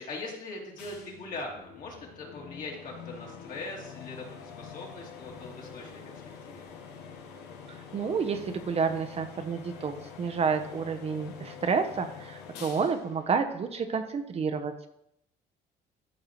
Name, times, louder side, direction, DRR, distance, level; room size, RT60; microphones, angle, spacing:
voice 1, 0.0-6.7, left 2 dB, 55° left, -2 dB, 2.8 m, -41 dB
sound 1, 0.8-14.3, left 6 dB, 80° left, 1.2 m, -46 dB
voice 2, 7.7-14.9, right 5 dB, 35° right, 7 dB, 0.7 m, -30 dB
13.0 x 5.4 x 3.1 m, 0.77 s
cardioid pair, 110°, 17 cm